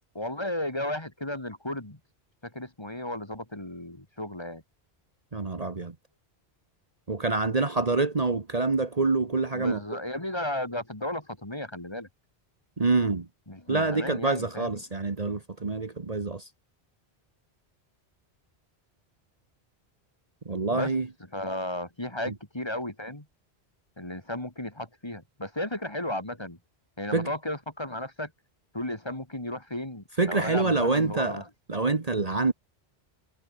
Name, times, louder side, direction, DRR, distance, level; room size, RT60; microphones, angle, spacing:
voice 1, 0.1-2.0 2.4-4.6 9.5-12.1 13.5-14.8 20.7-20.9 21.3-23.3 24.0-26.6 27.0-28.3 28.7-31.5, left 1 dB, 25° left, 2.5 m, -34 dB
voice 2, 5.3-5.9 7.1-9.8 12.8-13.3 13.7-16.5 20.4-21.1 22.3-22.4 27.1-27.3 30.2-31.4 31.7-32.5, right 3 dB, 35° right, 1.3 m, -26 dB
omnidirectional pair, 1.1 m